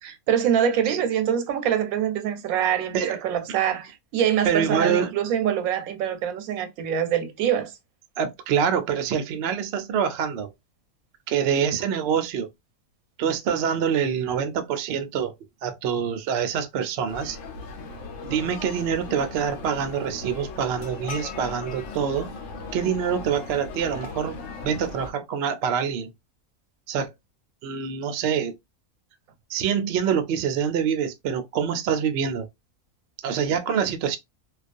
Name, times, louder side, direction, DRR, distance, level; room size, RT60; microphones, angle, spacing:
voice 1, 0.0-7.7, right 9 dB, 90° right, 1.0 m, -24 dB
voice 2, 4.4-5.1 8.2-10.5 11.3-12.5 13.2-15.3 15.6-17.4 18.2-22.3 22.7-24.4 24.6-26.1 26.9-27.1 27.6-28.5 29.5-32.5 33.2-34.2, right 7 dB, 65° right, 0.7 m, -25 dB
sound 1, 17.1-25.1, left 4 dB, 70° left, 1.0 m, -38 dB
2.3 x 2.3 x 2.5 m
omnidirectional pair, 1.4 m